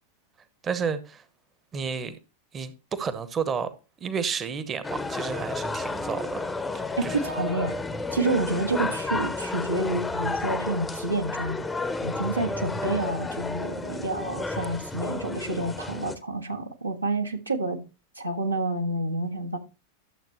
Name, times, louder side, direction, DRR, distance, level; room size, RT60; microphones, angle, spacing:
voice 1, 0.6-1.2 1.7-2.2 2.5-3.7 4.0-7.2, right 6 dB, 25° right, 0.9 m, -31 dB
sound 1, 4.8-16.2, left 3 dB, 10° left, 0.7 m, -31 dB
voice 2, 7.0-7.8 8.1-11.6 12.0-17.8 18.1-19.6, right 2 dB, 85° right, 1.4 m, -29 dB
12.0 x 7.3 x 3.0 m
figure-of-eight pair, 90°, 0 cm